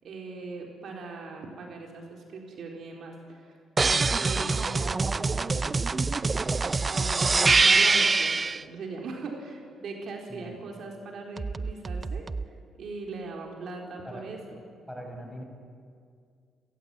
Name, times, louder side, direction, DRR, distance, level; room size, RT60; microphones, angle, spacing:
voice 1, 0.0-6.3 6.8-14.6, right 3 dB, 65° right, 1 dB, 4.2 m, -40 dB
sound 1, 3.8-8.6 11.4-12.4, right 4 dB, 30° right, 0.6 m, -24 dB
voice 2, 14.9-15.4, equal, ahead, 2 dB, 6.2 m, -41 dB
29.5 x 15.5 x 9.2 m, 2.3 s
cardioid pair, 90°, 0 cm